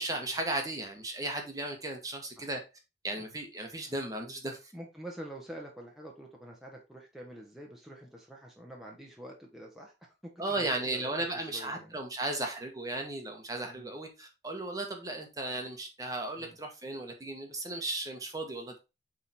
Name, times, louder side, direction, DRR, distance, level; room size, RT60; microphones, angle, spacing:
voice 1, 0.0-2.6 3.0-4.7 10.4-18.8, right 2 dB, 20° right, 3 dB, 1.4 m, -35 dB
voice 2, 4.7-12.0 13.6-14.0 16.4-16.6, right 1 dB, ahead, -2 dB, 1.2 m, -47 dB
8.0 x 3.8 x 4.3 m, 0.27 s
head